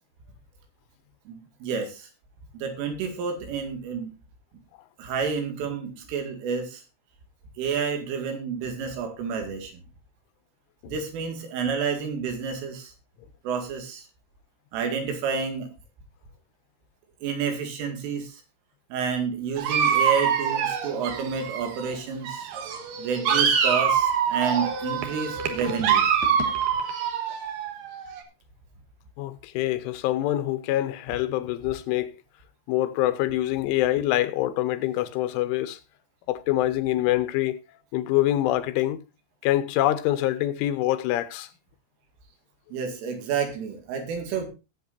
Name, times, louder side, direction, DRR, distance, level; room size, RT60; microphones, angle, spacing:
voice 1, 1.3-2.1 2.5-4.1 5.0-6.8 7.6-9.8 10.9-12.9 13.4-14.1 14.7-15.7 17.2-18.4 18.9-22.5 23.0-26.1 42.7-44.5, right 6 dB, 90° right, 4.7 m, -30 dB
Dog, 19.6-22.0 22.2-28.2, right 7 dB, 60° right, 2.5 m, -25 dB
voice 2, 29.2-32.2 32.7-35.8 36.3-39.0 39.4-41.5, left 14 dB, 90° left, 3.3 m, -25 dB
18.0 x 8.3 x 2.7 m
omnidirectional pair, 5.6 m